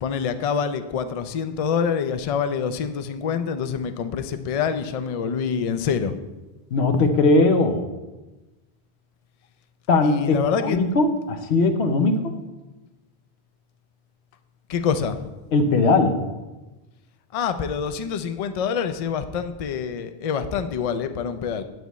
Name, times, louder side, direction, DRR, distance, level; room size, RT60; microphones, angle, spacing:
voice 1, 0.0-6.1 10.0-10.8 14.7-15.2 17.3-21.6, left 7 dB, 50° left, 10 dB, 0.4 m, -26 dB
voice 2, 6.7-7.8 9.9-12.3 15.5-16.2, left 3 dB, 75° left, 7 dB, 1.0 m, -19 dB
9.1 x 8.1 x 3.1 m, 1.1 s
omnidirectional pair, 1.1 m